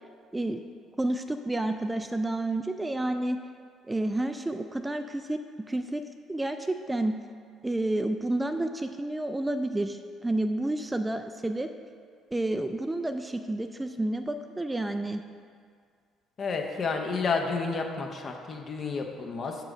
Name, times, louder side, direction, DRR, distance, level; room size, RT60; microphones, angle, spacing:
voice 1, 1.0-3.4 3.9-5.4 5.7-6.0 6.3-7.1 7.6-11.7 12.3-15.2, right 1 dB, 15° right, 7 dB, 0.3 m, -30 dB
voice 2, 16.4-19.6, left 4 dB, 40° left, 3 dB, 0.7 m, -30 dB
6.5 x 4.8 x 4.9 m, 2.1 s
figure-of-eight pair, 50°, 0 cm